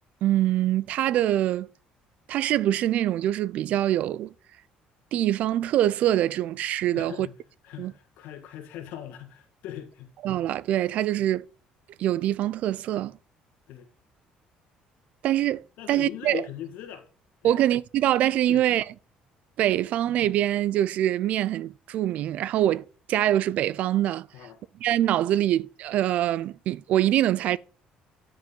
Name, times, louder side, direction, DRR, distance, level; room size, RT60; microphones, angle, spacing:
voice 1, 0.2-1.7 2.3-4.3 5.1-7.3 7.8-7.9 10.2-11.4 12.0-13.2 15.2-16.4 17.4-18.8 19.6-24.3 24.8-27.6, right 12 dB, 55° right, 0.3 m, -24 dB
voice 2, 6.9-7.4 7.6-10.1 11.2-11.3 13.7-13.9 15.8-17.0 17.4-17.6 18.5-18.7 24.3-24.6, left 10 dB, 75° left, 1.5 m, -40 dB
10.5 x 5.1 x 3.7 m
cardioid pair, 170°, 3 cm